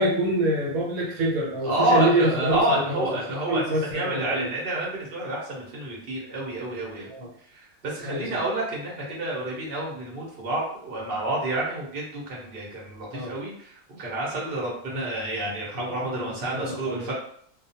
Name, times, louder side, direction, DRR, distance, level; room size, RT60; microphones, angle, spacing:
voice 1, 0.0-4.5 7.1-7.3 8.0-8.3 13.1-13.3 14.9-15.0 16.0-17.1, right 1 dB, 75° right, -3 dB, 1.2 m, -26 dB
voice 2, 1.6-3.6 3.9-7.1 7.5-17.1, right 1 dB, 45° right, -4 dB, 1.0 m, -29 dB
2.4 x 2.3 x 2.7 m, 0.62 s
omnidirectional pair, 1.5 m